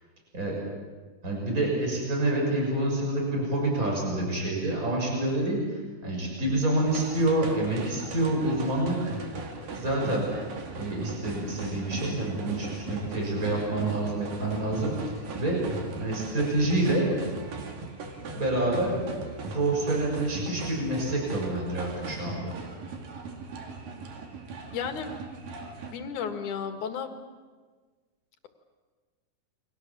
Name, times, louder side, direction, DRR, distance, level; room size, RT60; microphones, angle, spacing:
voice 1, 1.2-5.6 6.0-9.1 9.7-10.3 10.8-14.9 15.4-15.6 16.0-17.1 18.3-19.0 19.5-22.5, right 1 dB, 25° right, -1 dB, 6.9 m, -27 dB
sound 1, 6.8-25.9, right 3 dB, 90° right, 4.2 m, -38 dB
voice 2, 24.7-25.2 25.9-27.2, left 6 dB, 70° left, 6 dB, 3.2 m, -33 dB
29.5 x 23.5 x 7.4 m, 1.4 s
omnidirectional pair, 3.8 m